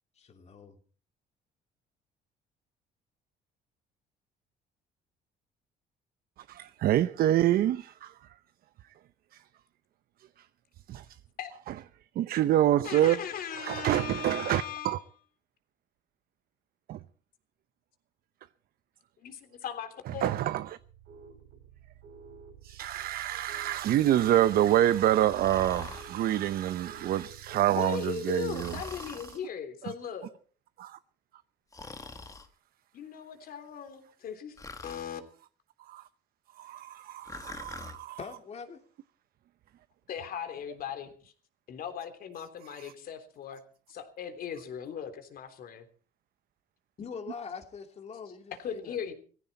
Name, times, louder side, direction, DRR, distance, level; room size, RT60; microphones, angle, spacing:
voice 1, 0.2-0.8 38.2-38.8 47.0-49.0, left 5 dB, 40° left, 2.7 m, -43 dB
voice 2, 6.5-8.1 9.3-9.4 10.9-11.1 12.2-13.2 13.5-15.0 16.9-17.0 20.2-20.8 22.6-29.1 30.8-31.0 35.9-36.0 36.6-38.2 42.8-42.9, right 12 dB, 60° right, 0.7 m, -27 dB
voice 3, 12.8-14.9 19.2-20.3 27.7-30.4 32.9-34.6 34.8-35.2 40.1-41.3 41.7-43.6 43.9-45.9 48.6-49.1, left 8 dB, 60° left, 3.4 m, -38 dB
sound 1, 20.8-27.6, right 7 dB, 75° right, 4.0 m, -51 dB
Breathing, 25.2-26.1 28.5-29.4 31.7-32.5 34.6-35.1 37.2-38.0, left 3 dB, 20° left, 1.8 m, -43 dB
19.0 x 15.5 x 4.3 m
cardioid pair, 110°, 17 cm